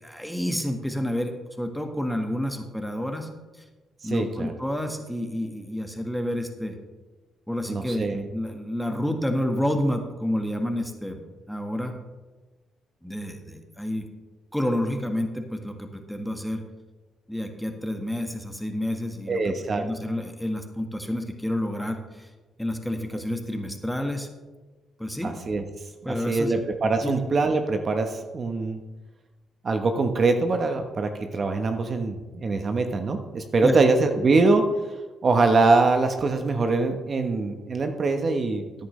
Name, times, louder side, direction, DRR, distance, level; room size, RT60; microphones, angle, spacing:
voice 1, 0.0-3.3 3.6-3.7 4.0-6.7 7.5-11.2 11.5-12.0 13.0-14.1 14.5-16.6 17.3-19.4 19.8-22.3 22.6-24.3 25.0-25.3 26.0-26.6 27.0-27.1 33.6-33.7, left 1 dB, ahead, 4 dB, 1.5 m, -29 dB
voice 2, 4.0-4.5 7.7-8.2 19.3-19.8 25.2-25.6 26.0-28.8 29.6-34.7 35.2-38.6, right 3 dB, 45° right, 6 dB, 1.0 m, -23 dB
14.0 x 10.0 x 3.2 m, 1.2 s
cardioid pair, 90°, 0 cm